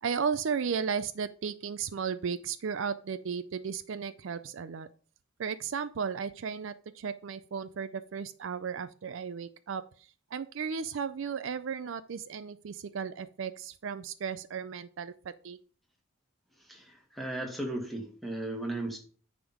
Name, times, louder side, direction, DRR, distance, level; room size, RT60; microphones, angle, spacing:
voice 1, 0.0-4.9 5.4-15.6, right 6 dB, 65° right, 14 dB, 0.4 m, -35 dB
voice 2, 16.7-19.0, right 1 dB, ahead, 1 dB, 1.7 m, -36 dB
9.8 x 3.6 x 5.9 m, 0.41 s
head